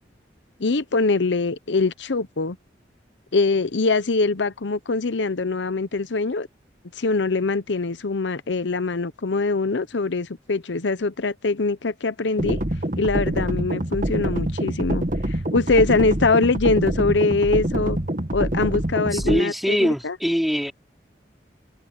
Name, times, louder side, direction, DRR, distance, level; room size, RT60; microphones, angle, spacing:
voice 1, 0.6-2.6 3.3-6.5 7.0-12.6 13.0-18.0 18.3-20.2, left 3 dB, 80° left, 0.8 m, -23 dB
sound 1, 12.4-19.4, right 1 dB, 45° right, 1.9 m, -25 dB
voice 2, 19.1-20.7, equal, ahead, 3.5 m, -22 dB
head